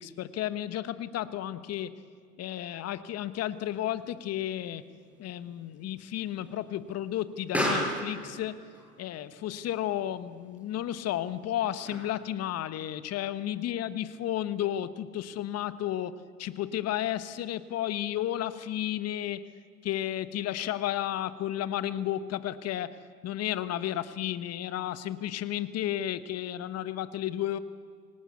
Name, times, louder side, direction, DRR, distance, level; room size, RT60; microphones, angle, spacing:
voice 1, 0.0-1.9 2.4-4.8 5.2-8.6 9.0-19.5 19.8-23.0 23.2-27.6, left 12 dB, 30° left, 14 dB, 1.2 m, -33 dB
Explosion, 3.4-12.4, equal, 5° right, 7.3 m, -38 dB
26.0 x 18.0 x 8.4 m, 2.1 s
hypercardioid pair, 95°, 50 cm